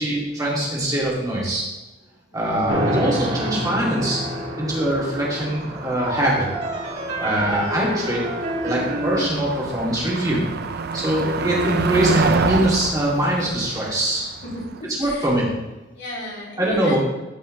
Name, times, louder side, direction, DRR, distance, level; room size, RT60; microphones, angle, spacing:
voice 1, 0.0-1.6 2.3-6.5 7.2-8.2 8.6-10.4 10.9-14.2 15.0-15.5 16.6-17.0, right 1 dB, 20° right, -5 dB, 2.7 m, -23 dB
voice 2, 2.3-2.7 14.4-15.3 15.9-17.0, left 1 dB, 60° left, -6 dB, 3.2 m, -36 dB
sound 1, 2.7-9.3, equal, 70° right, 3.2 m, -27 dB
Motor vehicle (road), 4.4-14.8, right 4 dB, 55° right, 0.5 m, -28 dB
13.5 x 5.4 x 3.3 m, 1.0 s
head